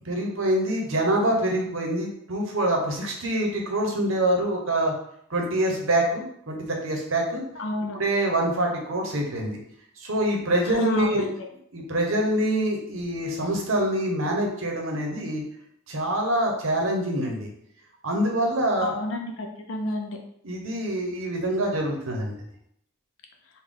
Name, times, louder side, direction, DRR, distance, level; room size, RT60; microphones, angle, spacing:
voice 1, 0.1-4.9 5.3-7.4 7.9-9.6 10.0-11.3 11.7-15.4 15.9-17.5 18.0-19.0 20.4-22.3, right 1 dB, 70° right, 1 dB, 0.8 m, -25 dB
voice 2, 7.6-8.0 10.6-11.3 18.8-20.2, left 2 dB, 65° left, 3 dB, 0.5 m, -30 dB
3.4 x 2.2 x 3.7 m, 0.71 s
head